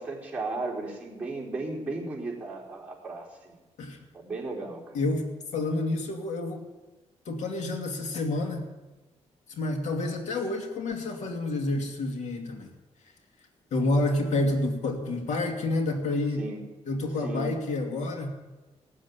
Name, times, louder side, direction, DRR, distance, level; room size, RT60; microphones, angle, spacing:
voice 1, 0.0-3.6 4.1-5.0 14.1-14.2 16.4-16.6 17.2-17.5, right 3 dB, 15° right, -5 dB, 4.5 m, -35 dB
voice 2, 4.9-6.6 7.3-8.7 9.5-12.7 13.7-16.5 16.9-18.3, left 2 dB, 85° left, 3 dB, 2.5 m, -29 dB
18.0 x 7.6 x 9.9 m, 1.1 s
cardioid pair, 130°, 12 cm